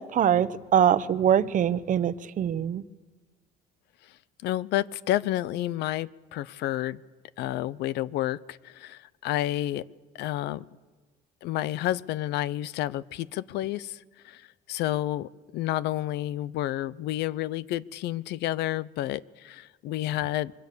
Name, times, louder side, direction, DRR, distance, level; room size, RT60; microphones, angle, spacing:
voice 1, 0.0-2.8, right 9 dB, 50° right, 14 dB, 1.0 m, -23 dB
voice 2, 4.4-7.0 7.4-9.8 10.2-10.6 11.4-14.4 14.7-20.5, left 14 dB, 80° left, 19 dB, 0.7 m, -30 dB
24.5 x 23.5 x 6.9 m, 1.3 s
cardioid pair, 110°, 17 cm